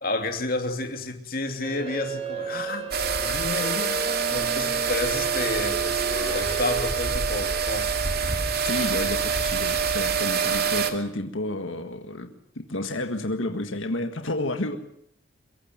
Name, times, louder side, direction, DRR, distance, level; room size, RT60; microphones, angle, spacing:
voice 1, 0.0-2.9 3.2-4.0 4.3-7.9, left 2 dB, 45° left, 5 dB, 2.9 m, -30 dB
sound 1, 1.6-6.8, right 3 dB, 30° right, 5.6 m, -35 dB
sound 2, 2.9-10.9, right 6 dB, 50° right, 2.6 m, -26 dB
voice 2, 8.6-14.8, left 1 dB, 80° left, 6 dB, 1.7 m, -30 dB
23.5 x 22.5 x 7.5 m, 0.67 s
head